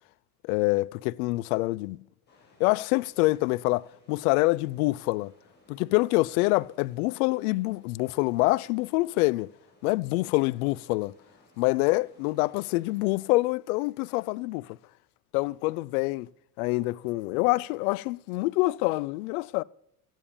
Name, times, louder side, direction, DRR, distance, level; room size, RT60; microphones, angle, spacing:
voice 1, 0.4-2.0 2.6-5.3 5.7-9.5 9.8-11.1 11.6-14.8 15.3-16.3 16.6-19.6, left 22 dB, 70° left, 0.5 m, -26 dB
sound 1, 2.3-13.1, left 1 dB, 20° left, 7.3 m, -62 dB
14.0 x 9.0 x 6.9 m
hypercardioid pair, 90°, 45 cm